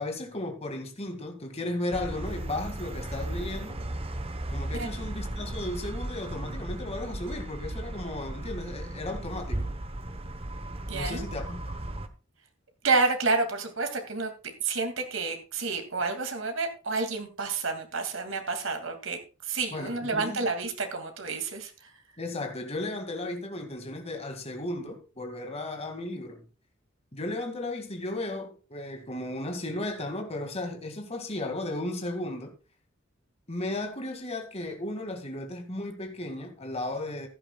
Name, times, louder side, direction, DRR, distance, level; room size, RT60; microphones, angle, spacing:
voice 1, 0.0-3.8 4.5-9.7 10.9-11.7 19.7-20.4 22.2-26.4 27.1-32.5 33.5-37.3, left 2 dB, 30° left, 2.2 m, -35 dB
sound 1, 1.9-12.1, right 1 dB, 30° right, 1.0 m, -36 dB
voice 2, 10.9-11.2 12.8-14.3 14.6-21.7, right 4 dB, 85° right, 2.4 m, -29 dB
15.0 x 11.0 x 2.4 m
head